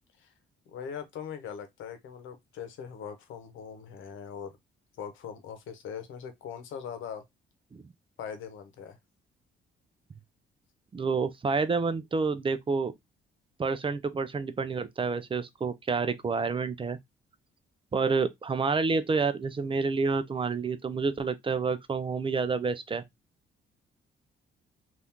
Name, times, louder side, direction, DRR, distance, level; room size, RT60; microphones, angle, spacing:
voice 1, 0.7-4.5 5.0-7.2 8.2-9.0, left 7 dB, 80° left, 0.9 m, -41 dB
voice 2, 10.9-12.9 13.6-17.0 17.9-23.0, right 4 dB, 25° right, 0.5 m, -29 dB
2.8 x 2.5 x 3.5 m
cardioid pair, 90°, 20 cm